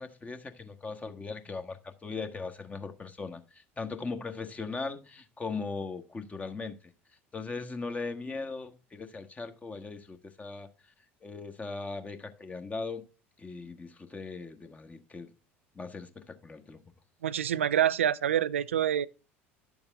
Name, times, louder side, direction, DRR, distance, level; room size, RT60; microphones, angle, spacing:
voice 1, 0.0-6.8 7.3-10.7 11.2-13.1 13.4-15.3 15.7-16.8, left 4 dB, 20° left, 1.4 m, -39 dB
voice 2, 17.2-19.1, right 10 dB, 80° right, 0.4 m, -26 dB
11.0 x 7.1 x 3.5 m
figure-of-eight pair, 65°, 7 cm